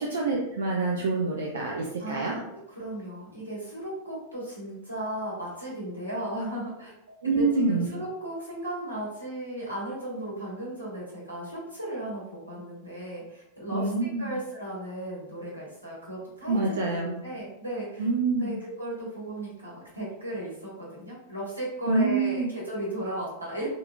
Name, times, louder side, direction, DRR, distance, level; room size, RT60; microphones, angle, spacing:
voice 1, 0.0-2.3 7.2-7.9 13.7-14.3 16.5-17.2 18.0-18.6 21.9-22.5, right 3 dB, 65° right, -2 dB, 0.5 m, -26 dB
voice 2, 2.0-6.9 7.2-13.9 14.2-23.7, right 1 dB, 90° right, -7 dB, 1.4 m, -36 dB
3.7 x 2.8 x 2.4 m, 0.85 s
figure-of-eight pair, 90°, 0 cm